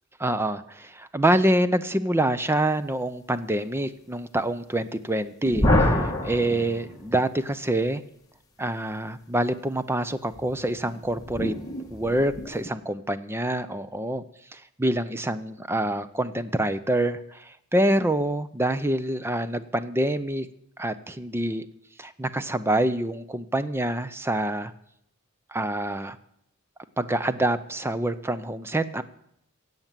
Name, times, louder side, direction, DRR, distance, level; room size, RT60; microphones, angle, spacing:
voice 1, 0.2-8.0 8.6-11.5 11.9-14.2 14.5-20.5 20.8-21.7 22.0-24.7 25.5-26.2 27.0-29.0, right 1 dB, 10° right, 13 dB, 0.5 m, -26 dB
sound 1, 5.5-7.4 10.3-12.7, left 1 dB, 15° left, 1.6 m, -27 dB
16.5 x 8.0 x 7.4 m, 0.75 s
head